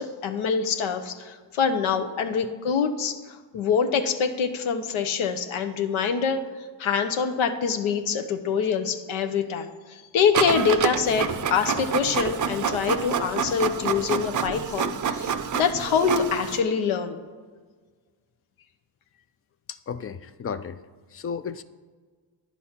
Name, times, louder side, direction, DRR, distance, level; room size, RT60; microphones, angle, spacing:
voice 1, 0.0-3.2 3.5-6.4 6.8-17.2, left 6 dB, 75° left, 6 dB, 0.7 m, -25 dB
Printer, 10.3-16.6, right 7 dB, 40° right, 0.5 m, -27 dB
voice 2, 19.7-20.8 21.1-21.6, left 6 dB, 30° left, 13 dB, 0.3 m, -33 dB
9.8 x 4.1 x 5.8 m, 1.5 s
cardioid pair, 70°, 49 cm